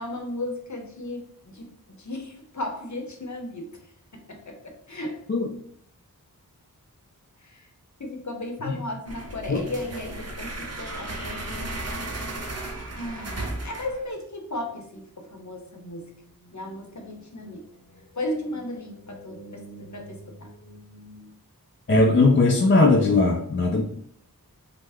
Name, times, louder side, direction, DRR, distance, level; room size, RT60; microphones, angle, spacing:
voice 1, 0.0-3.9 4.1-5.2 7.4-7.7 8.0-11.7 13.0-21.3, left 1 dB, 50° left, 3 dB, 0.7 m, -36 dB
sound 1, 9.1-14.1, right 2 dB, 45° right, 0.6 m, -35 dB
voice 2, 21.9-23.8, left 3 dB, 35° left, 2 dB, 0.4 m, -19 dB
3.2 x 2.0 x 3.4 m, 0.69 s
wide cardioid pair, 45°, 36 cm